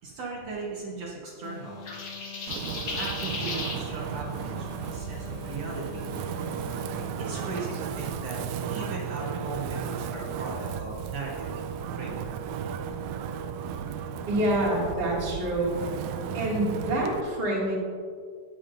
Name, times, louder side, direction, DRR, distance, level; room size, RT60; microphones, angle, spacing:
voice 1, 0.0-1.9 2.7-6.1 6.9-11.5 11.9-12.3, right 3 dB, 65° right, -4 dB, 2.1 m, -38 dB
sound 1, 1.4-7.3, left 10 dB, 80° left, 1.9 m, -45 dB
sound 2, 1.9-3.8, left 3 dB, 50° left, 1.4 m, -34 dB
Wind, 2.5-17.2, right 7 dB, 90° right, 2.0 m, -34 dB
voice 2, 14.3-15.8 16.3-17.8, right 1 dB, 20° right, -5 dB, 1.9 m, -27 dB
17.5 x 7.2 x 2.5 m, 2.1 s
omnidirectional pair, 3.4 m